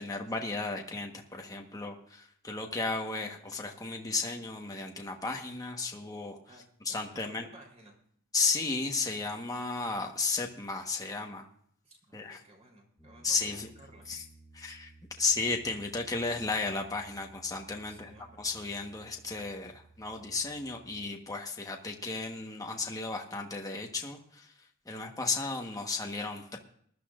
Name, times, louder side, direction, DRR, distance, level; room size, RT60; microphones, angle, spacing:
voice 1, 0.0-6.4 6.8-7.5 8.3-11.5 12.1-12.4 13.2-13.7 14.1-14.2 14.5-14.9 15.2-18.1 18.4-26.6, left 3 dB, 15° left, 2 dB, 1.2 m, -34 dB
voice 2, 6.9-8.0 11.8-14.1 17.8-18.4, right 1 dB, 30° right, 1 dB, 3.7 m, -56 dB
Piano, 13.0-21.0, right 3 dB, 5° right, 2.1 m, -58 dB
20.0 x 12.5 x 2.5 m, 0.65 s
head